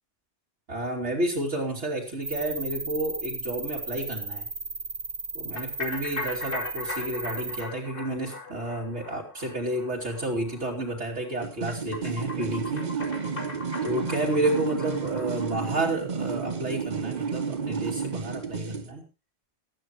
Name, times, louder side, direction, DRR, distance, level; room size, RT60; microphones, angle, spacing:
voice 1, 0.7-4.5 5.3-12.9 13.8-19.0, right 1 dB, 85° right, -5 dB, 3.4 m, -31 dB
sound 1, 2.2-7.6, right 3 dB, 65° right, 1.7 m, -35 dB
sound 2, 5.6-15.6, left 3 dB, 55° left, 2.8 m, -39 dB
sound 3, 11.4-18.9, right 6 dB, 45° right, 1.0 m, -31 dB
19.5 x 14.0 x 3.1 m, 0.28 s
omnidirectional pair, 1.1 m